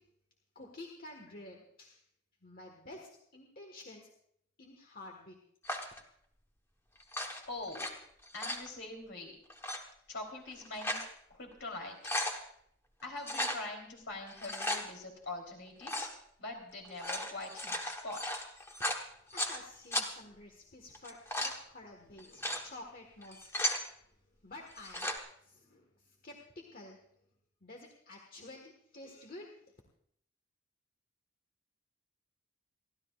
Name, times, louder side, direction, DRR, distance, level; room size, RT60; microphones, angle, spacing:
voice 1, 0.5-2.0 2.4-4.0 4.6-5.4 19.3-23.5 24.1-25.1 25.4-27.0 27.6-29.5, left 2 dB, 40° left, 2 dB, 1.6 m, -50 dB
sound 1, 5.6-6.0 7.0-7.9 8.2-8.7 9.5-9.8 10.5-11.1 11.5-11.6 11.9-12.4 13.2-13.6 14.3-14.8 15.8-16.1 16.9-19.6 19.9-20.1 20.9-21.6 22.2-22.6 23.2-23.8 24.7-25.2, left 1 dB, 10° left, 1.2 m, -36 dB
voice 2, 7.5-7.8 8.3-9.3 10.1-11.0 11.3-12.1 13.0-16.1 16.4-18.2, left 2 dB, 60° left, 2 dB, 3.5 m, -43 dB
29.5 x 12.5 x 2.4 m, 0.70 s
head